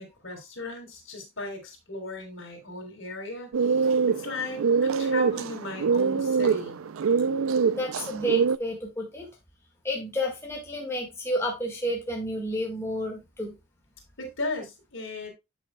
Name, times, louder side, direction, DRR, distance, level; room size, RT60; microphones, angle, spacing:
voice 1, 0.0-6.8 14.2-15.3, left 2 dB, 65° left, 3.7 m, -36 dB
sound 1, 3.5-8.6, right 5 dB, 80° right, 0.4 m, -24 dB
voice 2, 7.7-9.3 9.8-13.5, left 1 dB, 10° left, 1.7 m, -31 dB
11.5 x 6.2 x 2.2 m
head